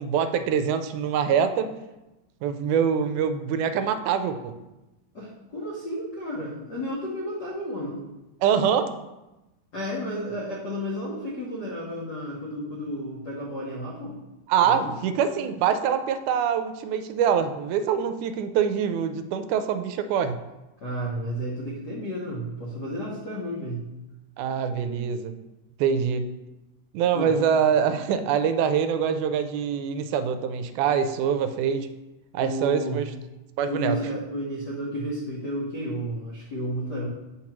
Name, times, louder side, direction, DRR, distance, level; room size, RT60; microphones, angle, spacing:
voice 1, 0.0-1.7 2.4-4.6 8.4-8.9 14.5-20.4 24.4-25.4 25.8-26.3 26.9-31.9 32.3-33.1 33.6-34.0, right 7 dB, 80° right, 9 dB, 2.0 m, -24 dB
voice 2, 5.1-8.0 9.7-14.2 14.6-14.9 20.8-23.8 27.1-27.3 32.4-33.0 33.7-37.1, equal, 75° left, -5 dB, 0.9 m, -32 dB
8.5 x 2.9 x 5.9 m, 1.0 s
omnidirectional pair, 3.6 m